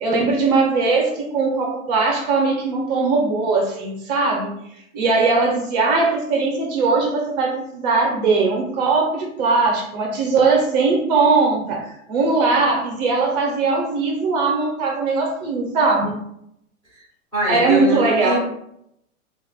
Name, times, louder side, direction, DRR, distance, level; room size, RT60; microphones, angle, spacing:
voice 1, 0.0-4.5 4.9-16.2 17.5-18.4, right 3 dB, 30° right, 0 dB, 0.7 m, -20 dB
voice 2, 17.3-18.4, equal, ahead, -9 dB, 0.3 m, -23 dB
2.5 x 2.1 x 3.9 m, 0.76 s
hypercardioid pair, 145°, 43 cm